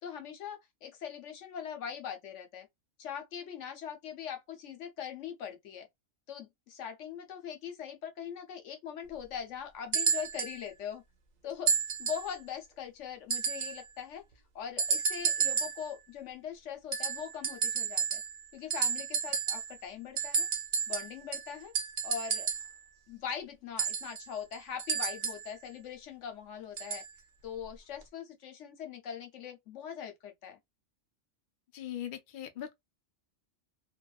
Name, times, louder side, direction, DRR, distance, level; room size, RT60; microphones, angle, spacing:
voice 1, 0.0-2.7 3.0-5.9 6.3-11.0 11.4-11.7 12.0-14.2 14.5-18.2 18.5-20.5 20.9-21.7 22.0-22.5 23.1-27.0 27.4-30.6, left 8 dB, 75° left, 1.1 m, -41 dB
sound 1, 9.9-10.6 11.7-12.3 13.3-13.8 14.8-15.9 16.9-18.4 18.7-19.8 20.2-22.8 23.8-25.5 26.8-27.1 28.0-28.1, right 6 dB, 50° right, 0.5 m, -31 dB
voice 2, 31.7-32.7, left 11 dB, 55° left, 0.6 m, -40 dB
2.5 x 2.3 x 2.3 m
omnidirectional pair, 1.3 m